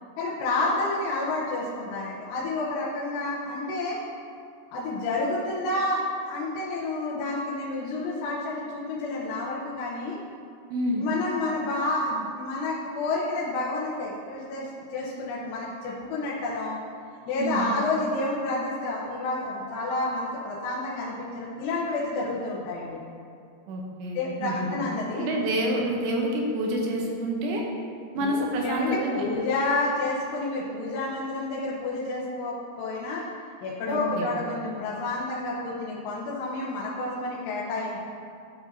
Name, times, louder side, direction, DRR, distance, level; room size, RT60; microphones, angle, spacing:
voice 1, 0.2-4.0 4.7-10.2 11.0-14.7 14.9-16.8 17.3-23.0 24.1-25.3 28.2-33.2 33.6-38.0, left 2 dB, 80° left, -7 dB, 3.2 m, -29 dB
voice 2, 10.7-11.0 17.4-17.7 23.7-24.7 25.2-27.6 28.1-29.1 33.9-34.3, right 1 dB, 75° right, -1 dB, 2.9 m, -28 dB
13.0 x 4.8 x 2.7 m, 2.4 s
omnidirectional pair, 5.6 m